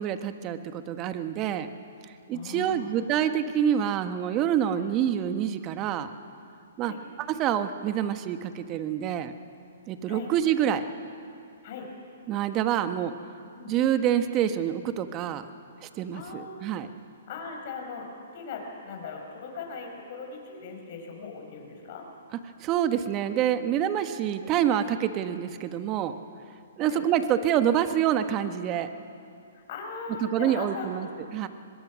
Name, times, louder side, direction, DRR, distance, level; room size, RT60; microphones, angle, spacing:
voice 1, 0.0-1.7 2.3-6.1 6.8-9.3 9.9-10.8 12.3-13.1 13.7-15.4 16.0-16.9 22.6-26.1 26.8-28.9 30.2-31.1 31.3-31.5, right 10 dB, 30° right, 9 dB, 1.3 m, -27 dB
voice 2, 2.3-2.9 4.7-4.9 6.8-7.0 10.1-10.3 11.6-11.9 13.6-13.7 16.1-16.7 17.3-22.1 26.8-27.0 29.5-31.1, left 4 dB, 50° left, 2 dB, 5.8 m, -39 dB
23.5 x 21.5 x 6.3 m, 2.4 s
hypercardioid pair, 135°, 0 cm